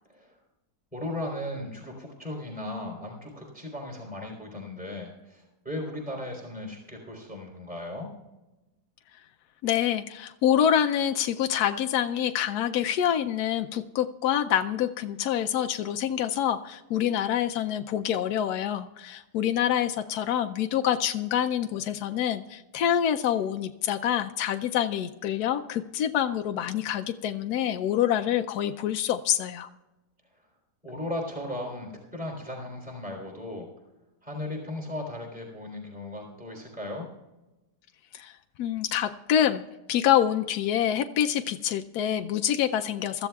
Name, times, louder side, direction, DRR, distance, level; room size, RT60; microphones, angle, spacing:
voice 1, 0.9-8.1 30.8-33.7 34.2-37.1, left 1 dB, 5° right, 0 dB, 3.4 m, -36 dB
voice 2, 9.6-29.7 38.1-39.6 39.9-43.3, left 10 dB, 75° left, 6 dB, 1.1 m, -26 dB
23.0 x 14.0 x 2.3 m, 1.1 s
omnidirectional pair, 1.7 m